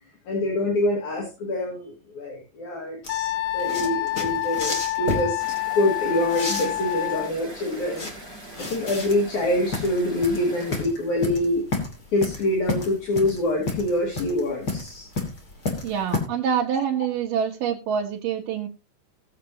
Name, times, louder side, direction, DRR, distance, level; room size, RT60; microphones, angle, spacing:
voice 1, 0.3-5.4 5.8-8.1 8.6-11.6 12.1-15.1, left 1 dB, 60° left, -1 dB, 3.7 m, -25 dB
sound 1, 3.0-16.2, left 3 dB, 30° left, 2.9 m, -31 dB
Wind instrument woodwind instrument, 3.1-7.3, left 15 dB, 80° left, 2.2 m, -27 dB
sound 2, 5.4-10.8, right 1 dB, 30° right, 6.5 m, -43 dB
voice 2, 15.8-18.7, right 8 dB, 80° right, -3 dB, 2.9 m, -26 dB
19.0 x 7.6 x 2.9 m, 0.29 s
omnidirectional pair, 3.9 m